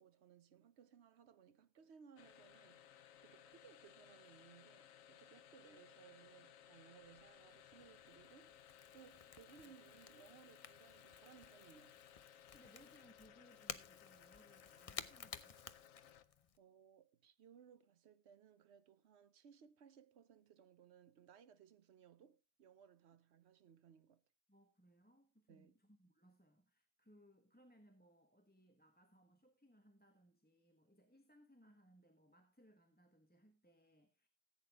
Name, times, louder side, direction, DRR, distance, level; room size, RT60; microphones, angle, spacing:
voice 1, 0.0-8.7 8.9-12.0 16.6-24.2 25.5-25.7, right 8 dB, 60° right, 1.0 m, -64 dB
sound 1, 2.2-16.5, left 9 dB, 80° left, 1.1 m, -62 dB
Crackle / Crack, 7.0-16.6, left 6 dB, 40° left, 0.5 m, -55 dB
voice 2, 12.5-15.6 24.5-34.3, equal, 10° left, 1.1 m, -68 dB
15.0 x 8.4 x 3.5 m
omnidirectional pair, 1.4 m